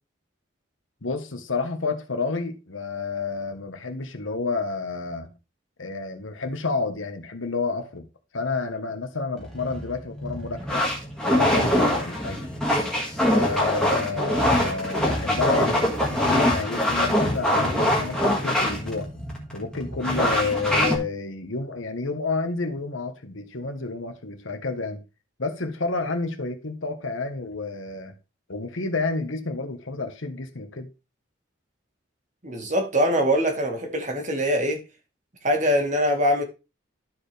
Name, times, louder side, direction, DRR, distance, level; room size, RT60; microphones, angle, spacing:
voice 1, 1.0-5.3 5.8-8.1 8.3-10.8 11.3-12.4 13.3-19.1 19.5-25.0 25.4-28.1 28.5-30.9, left 3 dB, 75° left, 1.2 m, -30 dB
sound 1, 9.4-21.0, left 1 dB, 5° left, 1.7 m, -24 dB
voice 2, 32.4-34.8 35.4-36.4, equal, 35° right, 1.8 m, -23 dB
12.5 x 4.5 x 3.3 m
head